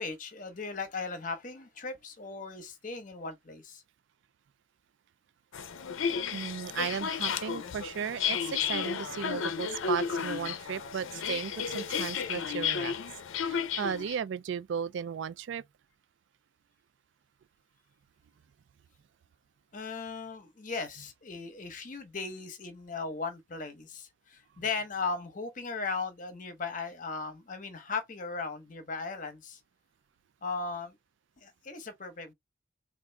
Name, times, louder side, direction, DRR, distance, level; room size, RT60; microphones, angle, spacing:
voice 1, 0.0-3.8 19.7-29.6 30.4-30.9 31.4-32.3, left 4 dB, 40° left, 0.7 m, -37 dB
sound 1, 5.5-14.2, left 7 dB, 75° left, 0.5 m, -33 dB
voice 2, 6.3-13.0 13.4-15.6, right 7 dB, 65° right, 0.3 m, -35 dB
3.6 x 2.4 x 3.1 m
head